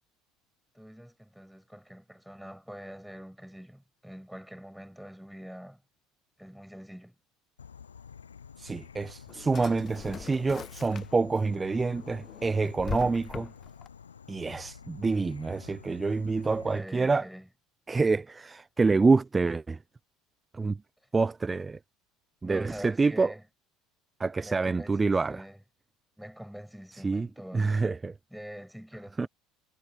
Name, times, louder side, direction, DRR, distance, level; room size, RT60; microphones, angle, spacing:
voice 1, 0.7-5.8 6.4-7.1 16.4-17.5 22.4-23.4 24.4-25.6 26.2-27.8 28.3-29.3, equal, ahead, 7.3 m, -45 dB
Insect / Frog, 7.6-16.8, left 7 dB, 80° left, 0.6 m, -49 dB
voice 2, 8.6-13.5 14.3-17.3 17.9-19.8 20.5-20.8 21.1-21.8 22.4-23.3 24.2-25.4 27.0-27.3 27.5-28.1 29.2-29.3, right 4 dB, 20° right, 0.8 m, -27 dB
Drawer open or close, 8.8-11.4 11.8-13.9, left 7 dB, 35° left, 0.4 m, -42 dB
figure-of-eight pair, 65°, 0 cm